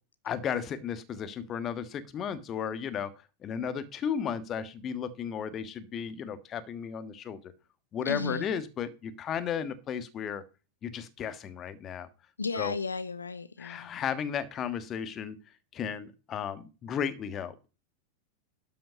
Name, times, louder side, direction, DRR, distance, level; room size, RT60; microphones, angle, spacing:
voice 1, 0.2-3.1 3.4-7.4 7.9-10.4 10.8-12.1 12.6-12.7 13.6-15.4 15.7-17.5, left 8 dB, 30° left, 1.3 m, -34 dB
voice 2, 8.0-8.5 12.4-13.9, left 4 dB, 75° left, 0.6 m, -34 dB
12.5 x 5.7 x 5.4 m
figure-of-eight pair, 90°, 0 cm